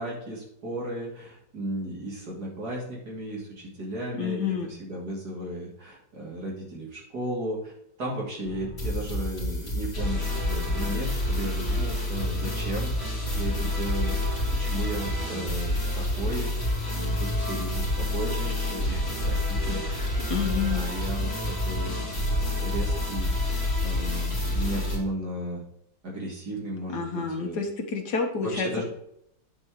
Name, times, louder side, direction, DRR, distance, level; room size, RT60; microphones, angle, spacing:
voice 1, 0.0-7.7 8.0-12.9 13.3-16.5 16.9-25.6 26.0-27.6 28.4-28.9, right 1 dB, 65° right, -4 dB, 3.1 m, -35 dB
voice 2, 4.2-4.7 20.3-20.9 26.9-28.7, left 5 dB, 70° left, 3 dB, 1.9 m, -29 dB
sound 1, 8.5-25.0, left 1 dB, 35° left, 3.3 m, -28 dB
9.6 x 4.4 x 4.9 m, 0.74 s
omnidirectional pair, 1.8 m